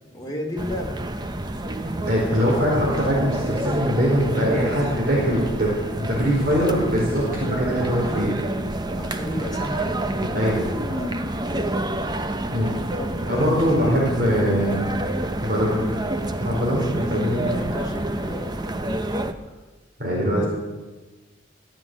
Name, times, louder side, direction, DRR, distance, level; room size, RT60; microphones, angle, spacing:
voice 1, 0.1-1.0 8.9-9.9 10.9-11.7 12.9-14.9 17.4-18.5 20.3-20.4, left 1 dB, 20° left, -1 dB, 3.1 m, -33 dB
sound 1, 0.6-19.3, right 1 dB, 20° right, 0.8 m, -28 dB
voice 2, 2.0-8.3 10.3-10.6 12.5-12.7 13.3-14.9 15.4-15.9 16.4-17.5 20.0-20.5, equal, 45° right, -4 dB, 4.7 m, -22 dB
14.5 x 9.0 x 9.5 m, 1.2 s
head